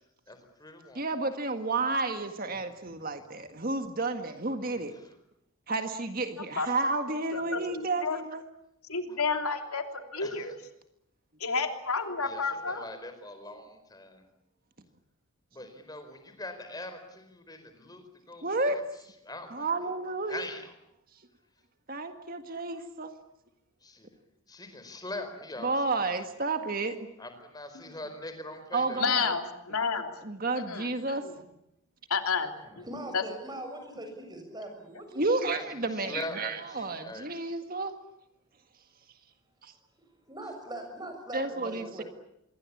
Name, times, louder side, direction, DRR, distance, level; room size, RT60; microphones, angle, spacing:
voice 1, 0.3-1.0 10.2-10.4 12.2-12.4 12.7-14.2 15.5-18.7 19.2-19.7 20.3-20.6 23.8-24.1 24.5-25.7 26.0-26.1 27.2-29.0 36.1-37.3, left 2 dB, 15° left, 8 dB, 4.6 m, -42 dB
voice 2, 0.9-4.9 5.7-8.4 18.4-18.8 19.5-20.4 21.9-23.1 25.6-27.0 28.7-29.3 30.2-31.2 35.1-37.9 39.6-39.7 41.3-42.0, right 3 dB, 40° right, 7 dB, 1.7 m, -31 dB
voice 3, 7.3-8.2 8.9-9.8 10.1-10.5 11.4-12.9 27.7-27.9 29.0-29.4 29.7-30.1 30.7-30.9 31.2-31.3 32.1-32.5 32.8-32.9 33.1-33.2, left 5 dB, 80° left, 6 dB, 3.2 m, -30 dB
voice 4, 32.6-35.7 40.3-42.0, right 1 dB, 20° right, 5 dB, 6.8 m, -41 dB
26.0 x 23.0 x 8.6 m, 0.82 s
head